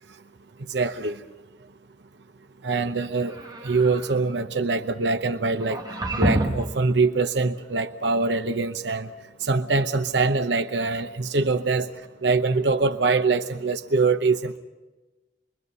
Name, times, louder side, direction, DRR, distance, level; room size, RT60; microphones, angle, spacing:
voice 1, 0.7-1.2 2.6-5.8 6.1-9.1 9.4-11.9 12.2-14.6, right 3 dB, 80° right, 7 dB, 0.8 m, -24 dB
sound 1, 3.3-4.2 5.6-6.8, right 1 dB, 25° right, 1.9 m, -27 dB
26.5 x 22.5 x 5.5 m, 1.2 s
head